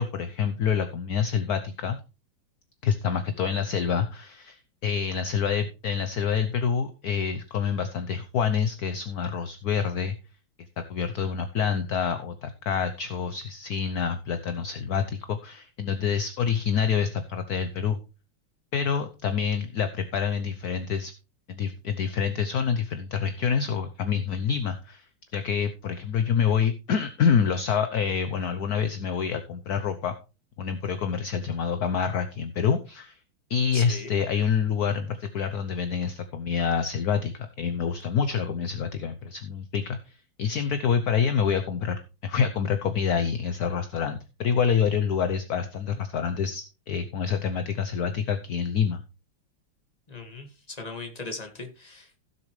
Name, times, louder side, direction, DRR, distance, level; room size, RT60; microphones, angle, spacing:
voice 1, 0.0-2.0 2.8-10.2 10.8-18.0 18.7-21.1 21.5-25.0 25.3-30.1 30.6-33.2 33.5-49.0, left 7 dB, 60° left, 9 dB, 1.2 m, -27 dB
voice 2, 33.7-34.1 50.1-52.2, left 3 dB, 20° left, 4 dB, 2.0 m, -39 dB
16.5 x 6.9 x 3.2 m, 0.31 s
omnidirectional pair, 2.2 m